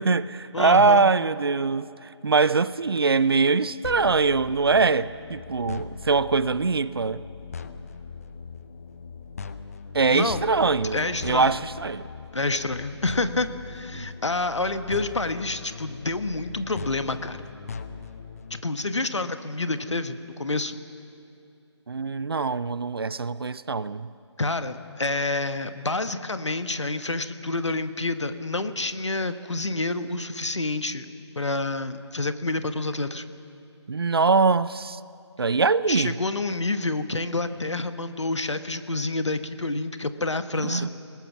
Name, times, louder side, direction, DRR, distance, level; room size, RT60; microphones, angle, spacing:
voice 1, 0.0-7.2 9.9-12.1 13.9-14.1 21.9-24.1 33.9-35.0 35.4-36.2 40.6-40.9, right 4 dB, 55° right, 0.6 m, -23 dB
voice 2, 0.5-1.1 10.1-10.4 10.9-11.6 12.3-17.4 18.6-20.8 24.4-31.1 31.3-33.2 35.9-40.9, left 2 dB, 75° left, 1.4 m, -28 dB
sound 1, 3.8-18.6, left 5 dB, 30° left, 0.8 m, -40 dB
30.0 x 19.5 x 6.0 m
figure-of-eight pair, 155°, 15 cm